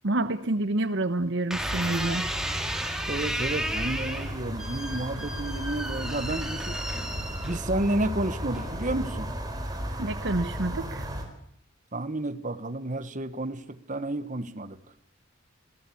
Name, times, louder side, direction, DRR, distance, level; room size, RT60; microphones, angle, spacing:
voice 1, 0.0-2.2 10.0-11.1, right 2 dB, 60° right, 12 dB, 1.1 m, -28 dB
sound 1, 1.5-7.9 8.5-9.0, right 1 dB, 5° right, 2.7 m, -34 dB
sound 2, 1.5-11.2, right 1 dB, 20° right, 4.5 m, -35 dB
voice 2, 3.1-6.8 7.4-9.3 11.9-14.8, right 1 dB, 40° right, 12 dB, 1.3 m, -31 dB
sound 3, 3.7-9.1, left 3 dB, 55° left, 5.2 m, -48 dB
27.5 x 18.0 x 8.6 m, 0.73 s
head